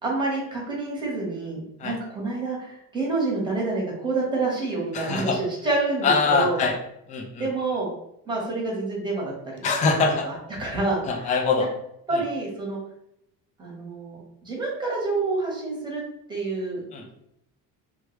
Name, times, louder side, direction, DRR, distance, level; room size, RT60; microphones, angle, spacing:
voice 1, 0.0-6.6 7.4-7.9 8.2-9.6 10.2-10.3 10.6-11.3 12.1-12.8 13.6-16.0 16.3-16.8, right 3 dB, 10° right, -3 dB, 1.0 m, -28 dB
voice 2, 4.9-5.4 6.0-6.8 7.1-7.5 9.6-10.3 11.1-11.7 16.9-17.0, left 4 dB, 20° left, 3 dB, 0.3 m, -23 dB
3.2 x 2.3 x 3.0 m, 0.76 s
cardioid pair, 140°, 39 cm